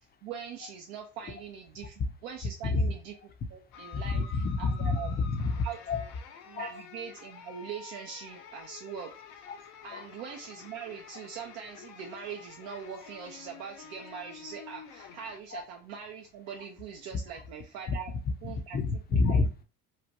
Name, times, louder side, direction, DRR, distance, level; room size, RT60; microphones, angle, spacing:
voice 1, 0.2-3.1 3.5-5.1 5.6-5.8 6.5-9.1 9.8-18.1 18.4-18.8 19.1-19.4, right 7 dB, 65° right, 0.6 m, -42 dB
sound 1, 3.7-15.4, left 7 dB, 75° left, 0.6 m, -50 dB
voice 2, 3.9-6.0 6.6-6.8 9.9-10.0 15.5-15.6 18.4-19.6, left 3 dB, 20° left, 0.5 m, -29 dB
3.1 x 2.2 x 2.5 m
hypercardioid pair, 75°, 46 cm